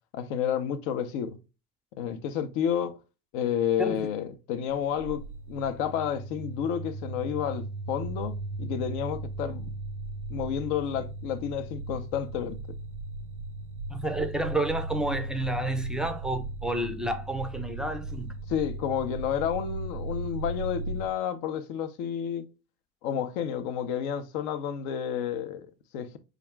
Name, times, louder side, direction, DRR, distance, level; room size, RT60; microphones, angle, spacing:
voice 1, 0.1-1.4 2.0-3.0 3.3-9.7 10.3-12.6 18.5-22.5 23.0-26.2, left 8 dB, 65° left, 0.7 m, -30 dB
sound 1, 4.7-21.1, right 2 dB, 80° right, 0.6 m, -37 dB
voice 2, 13.9-18.3, right 1 dB, ahead, 0.4 m, -30 dB
4.9 x 2.4 x 3.2 m
figure-of-eight pair, 55°, 44 cm